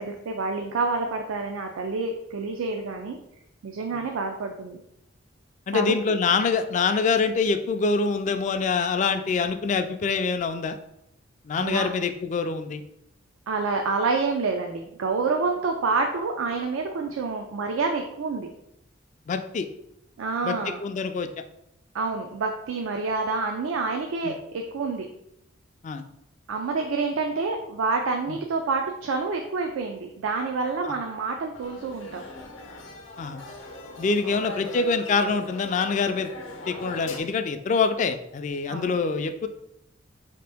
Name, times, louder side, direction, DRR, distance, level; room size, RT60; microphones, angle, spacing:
voice 1, 0.0-3.2 3.6-4.8 5.7-6.0 11.6-11.9 13.5-18.5 20.2-20.8 21.9-25.1 26.5-32.2 34.2-34.3 38.7-39.0, right 4 dB, 90° right, 3 dB, 0.4 m, -28 dB
voice 2, 5.7-10.8 11.4-12.8 19.3-19.7 20.4-20.6 20.8-21.3 24.2-24.3 25.8-26.0 28.3-28.4 30.8-30.9 33.2-33.4 34.0-36.3 36.7-39.5, left 4 dB, 40° left, 8 dB, 0.3 m, -25 dB
sound 1, 31.5-37.2, left 2 dB, 70° left, 0.7 m, -39 dB
4.1 x 2.8 x 3.4 m, 0.79 s
head